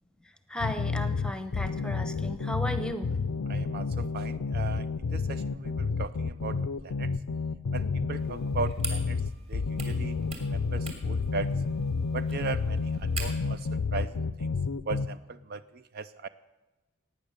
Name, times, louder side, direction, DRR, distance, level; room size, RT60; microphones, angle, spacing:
voice 1, 0.5-3.1, left 1 dB, 5° left, 10 dB, 0.9 m, -35 dB
sound 1, 0.6-15.1, left 4 dB, 90° left, 0.5 m, -30 dB
voice 2, 3.5-7.2 7.7-11.5 12.1-14.5 14.9-16.3, right 4 dB, 45° right, 13 dB, 0.4 m, -38 dB
sound 2, 8.2-13.6, right 2 dB, 30° right, 2.6 m, -42 dB
16.5 x 9.6 x 6.8 m, 1.1 s
head